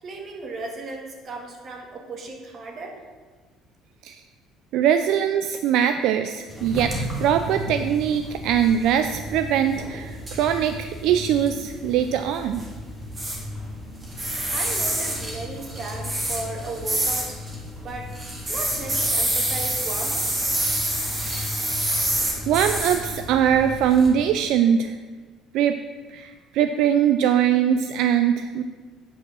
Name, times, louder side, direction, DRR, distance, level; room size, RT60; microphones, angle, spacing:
voice 1, 0.0-3.0 14.5-17.4 17.8-18.1 18.5-20.5, right 3 dB, 35° right, 2 dB, 1.5 m, -35 dB
voice 2, 4.7-12.6 22.5-24.9 25.5-25.8 26.1-28.6, right 9 dB, 65° right, 9 dB, 0.4 m, -22 dB
sound 1, 6.5-24.1, right 1 dB, 15° right, 1.6 m, -29 dB
8.7 x 4.7 x 6.3 m, 1.5 s
cardioid pair, 150°, 0 cm